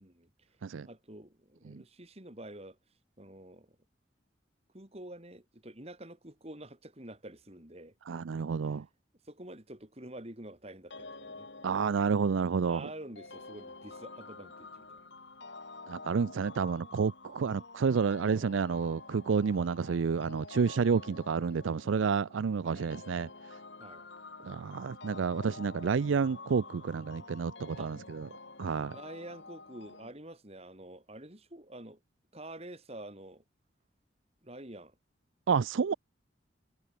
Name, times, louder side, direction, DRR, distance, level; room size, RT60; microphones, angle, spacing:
voice 1, 0.0-0.6 0.8-2.8 3.2-3.8 4.7-8.0 8.6-8.8 9.2-11.5 12.6-15.1 22.6-22.8 23.8-24.0 27.8-27.9 28.9-32.0 32.3-33.4 34.4-35.0, right 1 dB, 30° right, 3.2 m, -48 dB
voice 2, 8.1-8.9 11.6-12.9 15.9-23.3 24.4-28.3 28.6-29.0 35.5-35.9, right 5 dB, 90° right, 0.4 m, -30 dB
sound 1, 10.9-30.1, left 3 dB, 70° left, 3.4 m, -49 dB
head